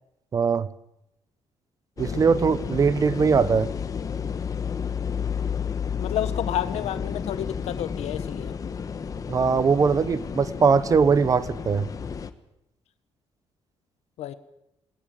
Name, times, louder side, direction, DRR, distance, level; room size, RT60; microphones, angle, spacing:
voice 1, 0.3-0.7 2.0-3.7 9.3-11.9, right 5 dB, 30° right, 16 dB, 0.7 m, -21 dB
sound 1, 2.0-12.3, left 7 dB, 35° left, 1.2 m, -31 dB
voice 2, 6.0-8.5 14.2-14.3, left 11 dB, 80° left, 12 dB, 1.4 m, -30 dB
19.5 x 19.0 x 7.7 m, 0.84 s
cardioid pair, 155°, 11 cm